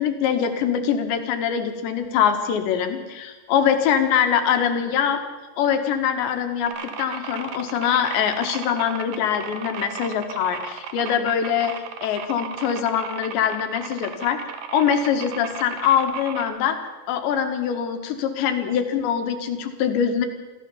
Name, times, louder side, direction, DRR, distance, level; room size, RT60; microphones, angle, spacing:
voice 1, 0.0-5.2 5.6-6.7 7.0-11.7 12.0-14.4 14.7-16.8 17.1-20.3, left 8 dB, 75° left, 7 dB, 3.9 m, -23 dB
sound 1, 6.7-16.5, right 8 dB, 60° right, 2.5 m, -35 dB
25.5 x 15.0 x 7.2 m, 1.2 s
omnidirectional pair, 5.3 m